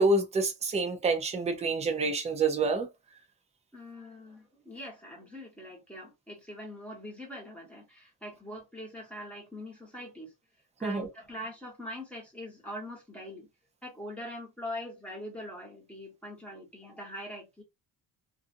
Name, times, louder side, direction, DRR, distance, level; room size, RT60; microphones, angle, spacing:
voice 1, 0.0-2.9 10.8-11.1, right 3 dB, 15° right, 0.5 m, -27 dB
voice 2, 3.7-10.3 10.8-13.5 13.8-17.6, left 1 dB, 5° left, 1.2 m, -43 dB
2.6 x 2.4 x 2.5 m
cardioid pair, 155°, 39 cm